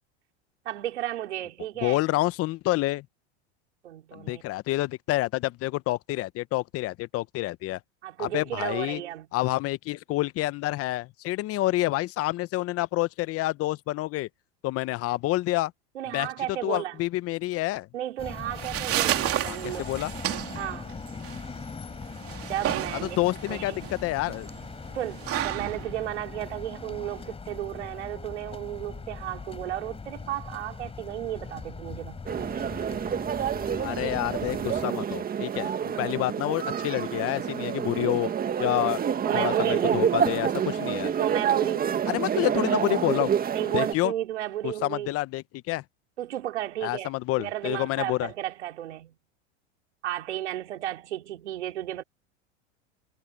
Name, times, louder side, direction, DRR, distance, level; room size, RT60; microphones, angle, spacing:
voice 1, 0.6-2.0 3.8-4.4 8.0-9.3 15.9-17.0 17.9-19.9 20.6-20.9 22.5-23.2 23.5-23.8 24.9-32.2 39.2-40.0 41.2-42.1 43.5-45.1 46.2-47.1 47.4-49.1 50.0-52.0, right 13 dB, 85° right, 5.1 m, -33 dB
voice 2, 1.8-3.0 4.1-7.8 8.2-9.0 9.3-14.3 14.6-15.7 16.1-16.3 16.6-17.9 19.4-20.1 23.0-23.7 24.0-24.5 33.8-38.3 38.6-39.0 39.3-41.1 42.1-43.3 43.7-44.1 44.6-45.8 46.8-48.3, left 17 dB, 45° left, 1.0 m, -28 dB
sound 1, 18.2-34.9, left 4 dB, 15° left, 3.8 m, -40 dB
sound 2, 18.3-27.3, right 13 dB, 45° right, 3.1 m, -32 dB
sound 3, 32.3-43.9, right 8 dB, 25° right, 1.8 m, -28 dB
hypercardioid pair, 105°, 33 cm